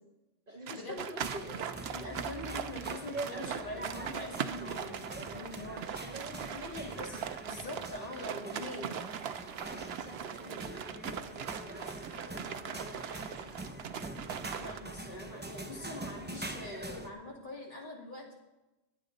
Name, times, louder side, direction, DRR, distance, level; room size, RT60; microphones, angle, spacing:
voice 1, 0.5-1.9 6.0-7.1 9.6-13.7, equal, 50° right, 3 dB, 1.9 m, -47 dB
sound 1, 0.7-14.8, right 8 dB, 65° right, 0.9 m, -40 dB
sound 2, 1.2-17.1, right 2 dB, 10° right, 0.7 m, -44 dB
voice 2, 1.9-6.0 7.0-7.1 7.5-8.9 14.6-18.3, left 2 dB, 45° left, -1 dB, 2.7 m, -43 dB
23.0 x 8.3 x 4.0 m, 1.0 s
omnidirectional pair, 1.1 m